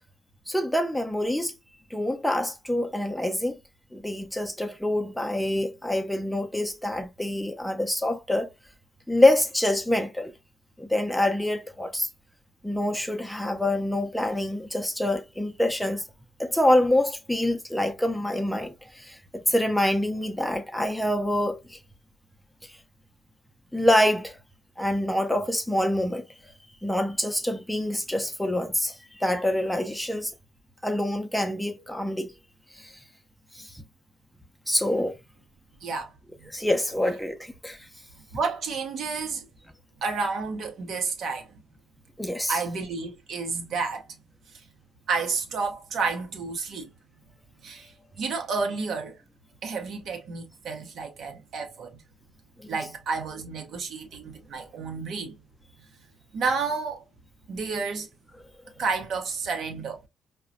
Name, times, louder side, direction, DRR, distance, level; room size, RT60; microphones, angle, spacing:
voice 1, 0.5-1.5 1.9-3.6 3.9-8.5 9.1-10.3 10.8-12.1 12.6-16.0 16.4-21.8 22.6-22.7 23.7-24.4 24.8-26.2 26.8-30.3 30.8-32.3 32.8-32.9 33.5-33.8 34.7-35.2 36.5-37.8 42.2-42.6 52.6-52.8, left 1 dB, 5° left, 0.6 m, -26 dB
voice 2, 35.8-36.1 36.4-36.5 38.3-39.4 40.0-41.5 42.5-44.0 45.1-46.9 47.6-47.9 48.2-49.2 49.6-52.0 52.7-55.3 56.3-57.0 57.5-58.1 58.8-60.0, right 4 dB, 60° right, 0.8 m, -30 dB
4.7 x 2.2 x 2.6 m
hypercardioid pair, 45°, 0 cm